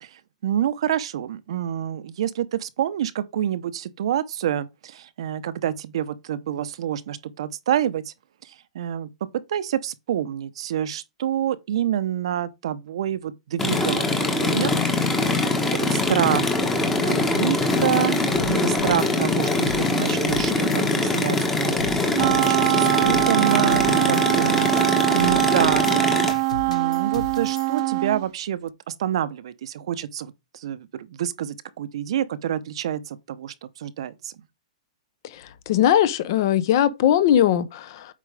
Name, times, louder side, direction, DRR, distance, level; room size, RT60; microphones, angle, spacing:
voice 1, 0.0-8.1 8.4-9.1 9.5-14.8 15.3-16.5 17.0-18.2 18.5-21.8 22.2-26.0 26.7-34.3, right 10 dB, 50° right, 0.8 m, -27 dB
sound 1, 13.6-26.3, left 2 dB, 5° left, 1.1 m, -23 dB
sound 2, 17.7-27.8, left 3 dB, 75° left, 1.7 m, -37 dB
Wind instrument woodwind instrument, 22.1-28.2, right 23 dB, 30° right, 0.3 m, -22 dB
voice 2, 35.7-38.1, left 10 dB, 35° left, 0.7 m, -19 dB
8.4 x 4.9 x 3.3 m
hypercardioid pair, 175°, 4 cm